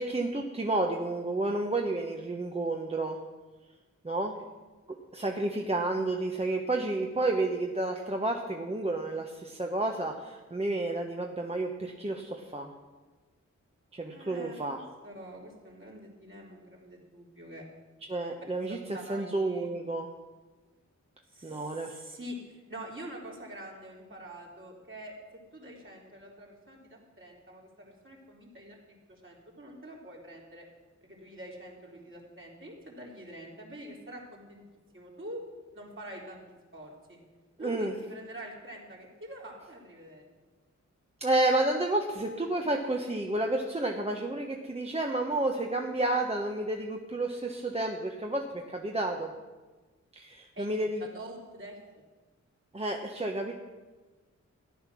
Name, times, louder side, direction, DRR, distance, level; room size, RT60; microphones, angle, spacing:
voice 1, 0.0-3.2 4.0-4.3 5.1-12.7 13.9-14.8 18.1-18.8 19.1-20.1 21.4-22.0 37.6-37.9 41.2-49.3 50.1-51.1 52.7-53.5, right 2 dB, 20° right, 1 dB, 1.0 m, -30 dB
voice 2, 14.1-17.6 18.5-19.7 21.3-25.1 25.5-28.8 29.1-30.6 31.0-34.6 34.9-35.4 35.7-36.4 36.7-37.2 37.6-40.2 50.5-50.7 51.0-51.8, right 1 dB, 45° right, -2 dB, 3.5 m, -45 dB
14.0 x 10.5 x 6.1 m, 1.3 s
wide cardioid pair, 95°, 29 cm